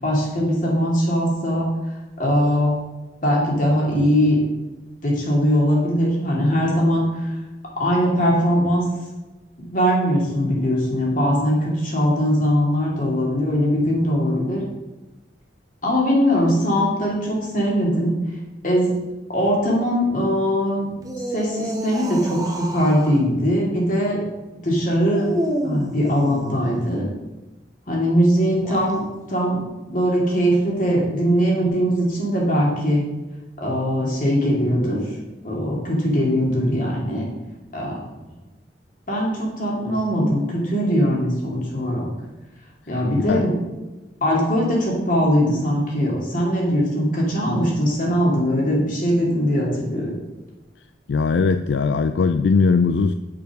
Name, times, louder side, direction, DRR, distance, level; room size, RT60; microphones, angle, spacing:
voice 1, 0.0-1.7 2.2-2.8 3.2-4.4 5.0-7.3 7.8-8.8 9.6-14.6 15.8-18.2 18.6-18.9 19.3-20.8 21.3-24.2 24.6-25.4 25.6-27.1 27.9-29.0 29.3-29.6 29.9-33.0 33.6-35.0 35.4-37.3 37.7-38.0 39.1-42.1 42.9-43.5 44.2-50.2, equal, 50° left, -3 dB, 2.6 m, -21 dB
sound 1, 20.9-23.2 25.1-26.9 28.5-29.0, right 1 dB, 20° right, 1.0 m, -29 dB
voice 2, 51.1-53.1, left 4 dB, 75° left, 10 dB, 0.3 m, -19 dB
6.6 x 5.5 x 6.3 m, 1.1 s
head